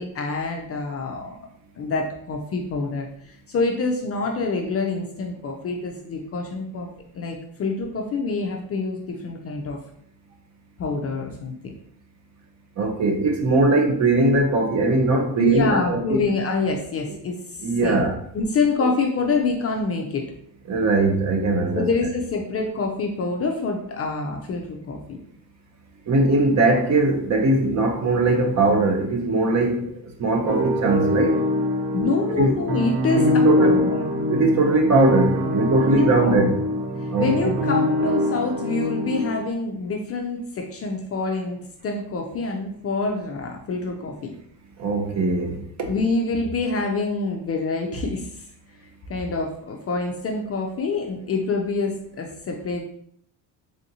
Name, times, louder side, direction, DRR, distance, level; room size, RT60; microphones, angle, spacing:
voice 1, 0.0-1.4 1.8-6.9 7.1-9.8 10.8-11.7 15.4-18.0 18.3-20.3 21.7-25.2 31.9-34.1 35.9-36.5 37.0-44.3 45.9-48.4 49.1-52.8, left 3 dB, 35° left, 0.4 m, -26 dB
voice 2, 12.8-16.3 17.6-18.2 18.8-18.9 20.7-21.9 26.1-29.9 30.2-31.4 32.4-32.6 33.2-33.8 34.3-36.6 37.1-37.6 44.8-45.9, right 2 dB, 40° right, 0.7 m, -20 dB
sound 1, 30.5-39.4, left 1 dB, 75° right, 1.1 m, -23 dB
3.4 x 2.6 x 2.7 m
supercardioid pair, 95°, 46 cm